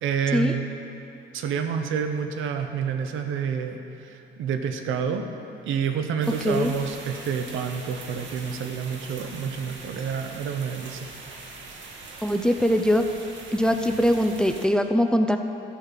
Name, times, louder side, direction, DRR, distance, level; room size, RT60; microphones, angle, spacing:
voice 1, 0.0-0.6 1.3-5.2 5.6-11.1, right 7 dB, 85° right, 6 dB, 0.9 m, -28 dB
sound 1, 6.2-14.7, right 3 dB, 70° right, 1.6 m, -42 dB
voice 2, 12.2-13.1 13.5-15.4, equal, 5° left, 6 dB, 0.6 m, -22 dB
12.5 x 5.6 x 7.6 m, 2.8 s
cardioid pair, 90°, 20 cm